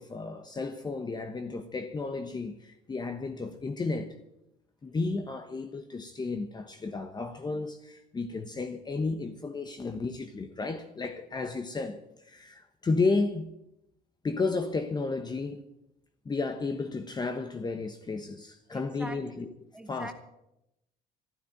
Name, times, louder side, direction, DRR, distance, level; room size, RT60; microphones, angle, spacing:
voice 1, 0.0-4.1 4.8-13.5 14.2-15.7 16.2-19.5 19.9-20.1, left 3 dB, 25° left, 1.1 m, -33 dB
voice 2, 18.7-19.5 19.7-20.1, right 1 dB, 5° right, 2.0 m, -43 dB
12.5 x 11.5 x 8.8 m
cardioid pair, 110°, 17 cm